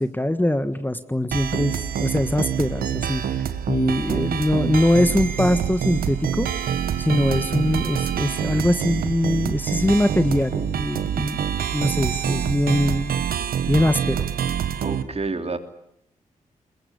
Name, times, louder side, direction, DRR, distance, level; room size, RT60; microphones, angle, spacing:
voice 1, 0.0-6.5 7.0-11.4 11.7-13.1 13.7-14.3, left 1 dB, 15° left, 10 dB, 1.5 m, -22 dB
sound 1, 1.3-15.0, right 8 dB, 85° right, 1.4 m, -26 dB
voice 2, 14.8-15.6, right 3 dB, 45° right, 7 dB, 3.2 m, -28 dB
22.0 x 22.0 x 9.8 m, 0.74 s
supercardioid pair, 45°, 15 cm